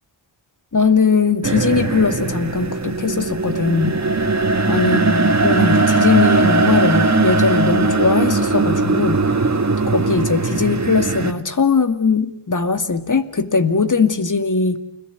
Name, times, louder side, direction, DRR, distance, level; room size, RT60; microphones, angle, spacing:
voice 1, 0.7-4.0 4.7-9.5 9.9-14.8, left 4 dB, 40° left, 10 dB, 2.3 m, -19 dB
sound 1, 1.4-11.3, right 3 dB, 35° right, 2.4 m, -19 dB
29.0 x 18.0 x 9.5 m, 0.75 s
cardioid pair, 50°, 48 cm